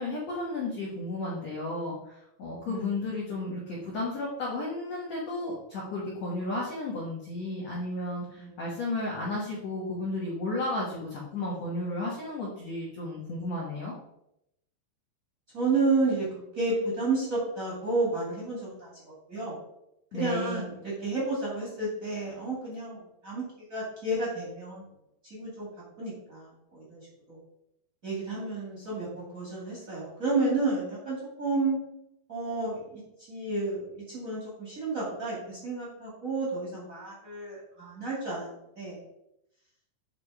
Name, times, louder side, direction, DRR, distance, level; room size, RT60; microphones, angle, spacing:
voice 1, 0.0-13.9 20.1-20.7, left 2 dB, 85° left, -5 dB, 1.4 m, -33 dB
voice 2, 2.6-3.1 8.4-8.6 15.5-19.5 20.1-23.4 23.7-24.9 25.2-25.7 26.0-27.4 28.0-31.8 32.3-33.0 33.3-38.5 38.7-39.0, right 3 dB, 45° right, -6 dB, 1.0 m, -31 dB
9.7 x 3.3 x 4.8 m, 0.81 s
omnidirectional pair, 5.4 m